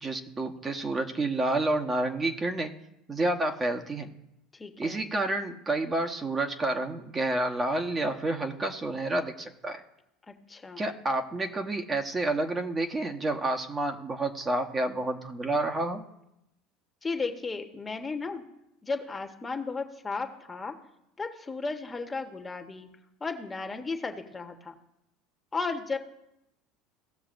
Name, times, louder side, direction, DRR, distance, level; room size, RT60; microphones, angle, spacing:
voice 1, 0.0-2.7 3.1-4.1 4.8-9.8 10.8-16.0, right 2 dB, 25° right, 4 dB, 1.1 m, -29 dB
voice 2, 4.5-5.0 10.3-10.8 17.0-18.4 18.8-20.7 21.2-22.9 23.2-24.7 25.5-26.0, left 4 dB, 20° left, 5 dB, 1.2 m, -34 dB
17.0 x 6.8 x 2.6 m, 0.84 s
hypercardioid pair, 80°, 0 cm